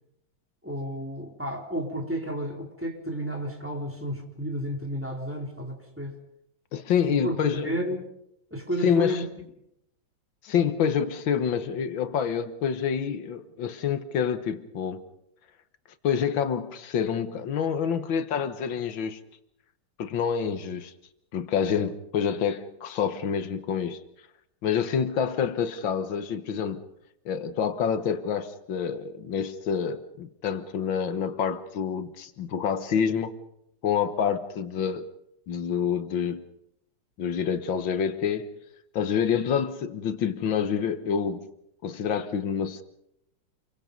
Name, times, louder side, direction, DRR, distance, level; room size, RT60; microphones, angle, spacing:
voice 1, 0.6-6.2 7.1-7.4 7.6-8.0 8.5-9.2, equal, 5° right, 3.6 m, -31 dB
voice 2, 6.7-7.7 8.8-9.2 10.4-15.0 16.0-19.2 20.0-20.9 21.3-24.0 24.6-26.8 27.3-33.4 33.8-35.1 35.5-36.4 37.2-38.5 38.9-41.5 41.8-42.8, left 7 dB, 90° left, 2.0 m, -27 dB
28.0 x 23.5 x 5.3 m
omnidirectional pair, 2.0 m